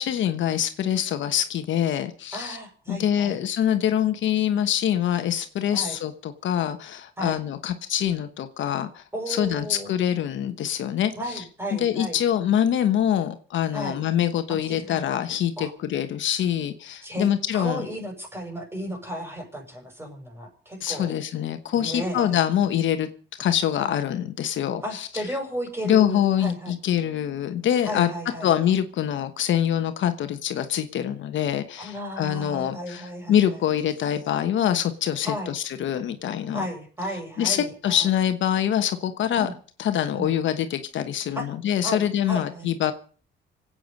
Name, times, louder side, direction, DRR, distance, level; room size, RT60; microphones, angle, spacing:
voice 1, 0.0-2.6 2.9-11.1 11.7-17.9 20.8-23.1 23.4-25.1 25.8-28.1 28.4-36.7 37.4-39.5 39.8-42.9, left 10 dB, 70° left, 9 dB, 1.2 m, -25 dB
voice 2, 2.3-3.4 5.7-6.0 7.2-7.4 9.1-9.9 11.2-12.2 13.7-14.0 14.5-15.0 15.6-15.7 17.0-17.3 17.5-21.1 21.8-22.4 24.8-26.7 27.8-28.5 31.8-33.6 35.3-35.5 36.5-38.1 39.3-39.5 40.1-40.3 41.4-41.5 41.8-42.7, equal, 10° right, 3 dB, 6.0 m, -34 dB
26.0 x 8.8 x 5.3 m, 0.43 s
cardioid pair, 90°, 20 cm